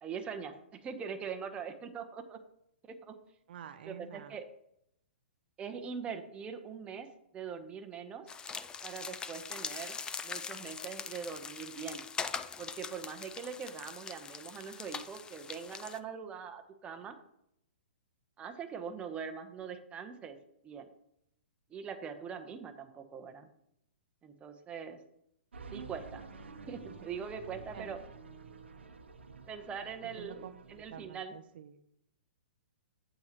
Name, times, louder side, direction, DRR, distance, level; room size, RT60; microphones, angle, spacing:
voice 1, 0.0-2.4 2.9-3.2 3.8-4.5 5.6-7.1 7.3-8.3 8.8-10.0 10.2-12.0 12.6-17.2 18.4-20.4 20.6-20.9 21.7-23.5 24.2-25.0 25.7-26.2 26.7-28.0 29.5-30.4 30.7-31.3, right 6 dB, 20° right, 6 dB, 0.9 m, -42 dB
voice 2, 3.5-4.4 27.7-27.9 30.0-31.8, right 8 dB, 60° right, 9 dB, 0.6 m, -49 dB
sound 1, 8.3-16.0, left 6 dB, 15° left, 0.4 m, -42 dB
sound 2, 25.5-31.0, right 4 dB, 85° right, 1.0 m, -50 dB
8.7 x 7.7 x 3.0 m, 0.75 s
hypercardioid pair, 125°, 6 cm